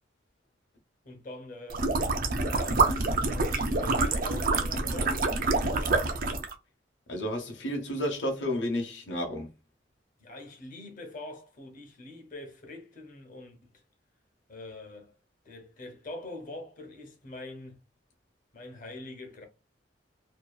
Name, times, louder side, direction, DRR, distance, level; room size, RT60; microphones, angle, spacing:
voice 1, 1.0-1.9 2.4-2.9 3.3-5.6 10.2-13.7 14.5-15.1 15.4-17.8 18.5-19.5, left 2 dB, 45° left, 0.8 m, -44 dB
sound 1, 1.7-6.5, right 3 dB, 50° right, 0.5 m, -27 dB
voice 2, 7.1-9.5, left 1 dB, 75° left, 0.8 m, -31 dB
2.7 x 2.3 x 2.3 m
head